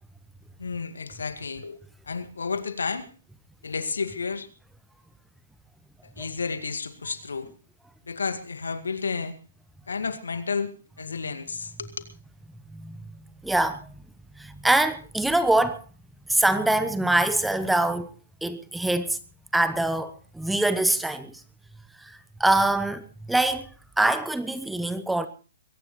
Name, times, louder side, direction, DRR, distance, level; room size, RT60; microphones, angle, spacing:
voice 1, 0.6-1.8 2.0-3.1 3.6-4.5 6.0-7.5 8.1-9.4 9.9-12.1, left 5 dB, 75° left, 1.9 m, -31 dB
voice 2, 13.4-13.9 14.4-15.8 16.3-18.1 18.4-19.2 19.5-21.4 22.0-23.7 24.0-25.3, right 2 dB, 5° right, 1.0 m, -24 dB
22.0 x 17.5 x 3.2 m
figure-of-eight pair, 125°, 0 cm